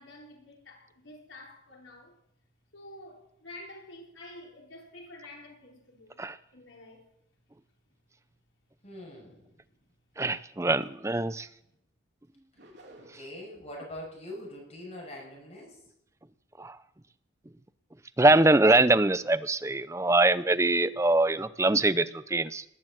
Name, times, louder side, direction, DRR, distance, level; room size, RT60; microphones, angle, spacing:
voice 1, 0.0-2.1 2.7-6.2 6.5-7.0, left 1 dB, 85° left, 5.1 m, -49 dB
voice 2, 8.8-9.4 13.1-15.8, left 1 dB, 35° left, 6.1 m, -43 dB
voice 3, 10.2-11.5 16.6-16.8 18.2-22.6, right 2 dB, 15° right, 0.6 m, -23 dB
sound 1, 12.6-13.5, right 1 dB, 60° right, 3.7 m, -52 dB
20.0 x 8.8 x 7.6 m
head